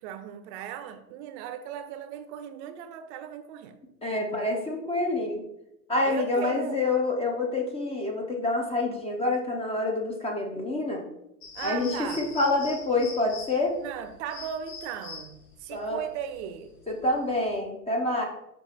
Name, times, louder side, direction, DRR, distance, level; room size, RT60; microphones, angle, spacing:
voice 1, 0.0-3.8 6.0-6.8 11.5-12.3 13.8-16.7, right 9 dB, 50° right, 0.5 m, -37 dB
voice 2, 4.0-5.4 5.9-11.0 11.6-13.8 15.7-16.0 16.9-18.2, left 2 dB, 15° left, 0.4 m, -27 dB
sound 1, 11.4-17.6, left 5 dB, 75° left, 1.2 m, -43 dB
5.2 x 3.1 x 3.2 m
hypercardioid pair, 100°, 47 cm